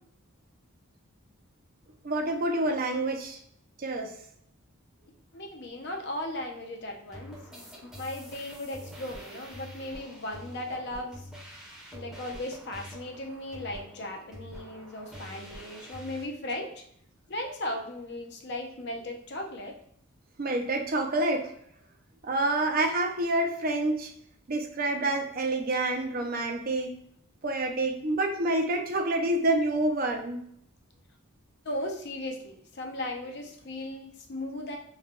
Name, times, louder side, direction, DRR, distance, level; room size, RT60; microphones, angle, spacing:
voice 1, 2.0-3.4 3.8-4.1 20.4-21.5 22.2-24.1 24.5-26.9 27.4-30.4, right 2 dB, 40° right, 3 dB, 0.5 m, -27 dB
voice 2, 5.3-11.3 11.9-16.8 17.3-19.8 31.6-34.8, left 1 dB, 50° left, 2 dB, 0.6 m, -37 dB
sound 1, 7.1-16.3, equal, ahead, 0.7 m, -46 dB
3.3 x 2.2 x 3.6 m, 0.68 s
head